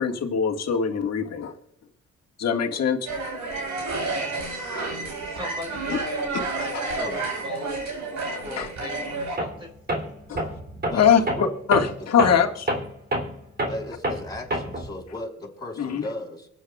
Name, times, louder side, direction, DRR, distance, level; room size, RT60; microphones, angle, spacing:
voice 1, 0.0-1.5 2.4-3.1 4.7-4.8 5.9-6.0 6.3-6.4 8.3-8.7 10.3-10.5 10.9-11.2 11.7-12.5 15.8-16.0, left 7 dB, 60° left, 3 dB, 2.0 m, -22 dB
sound 1, 3.1-9.4, right 3 dB, 70° right, 5.0 m, -30 dB
voice 2, 5.1-7.8 8.4-9.7, left 1 dB, 15° right, -1 dB, 4.9 m, -38 dB
Tools, 9.4-9.6 9.9-14.9, right 1 dB, 30° right, 3.4 m, -28 dB
voice 3, 10.9-11.5 12.2-12.3 13.7-16.5, left 1 dB, 15° left, -1 dB, 4.6 m, -36 dB
24.0 x 9.1 x 2.4 m, 0.77 s
cardioid pair, 90°, 30 cm